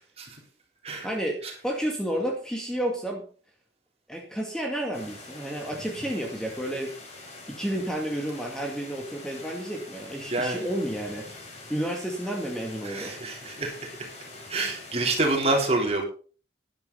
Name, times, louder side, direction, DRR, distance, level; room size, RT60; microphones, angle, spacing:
voice 1, 1.0-3.3 4.1-6.9 7.5-11.3 11.7-13.2, right 1 dB, 5° left, 1 dB, 2.1 m, -31 dB
sound 1, 4.9-15.4, left 2 dB, 40° left, 4.5 m, -45 dB
voice 2, 10.3-10.7 12.8-13.9 14.5-16.0, right 2 dB, 35° right, 0 dB, 3.8 m, -27 dB
12.0 x 11.0 x 4.1 m, 0.39 s
head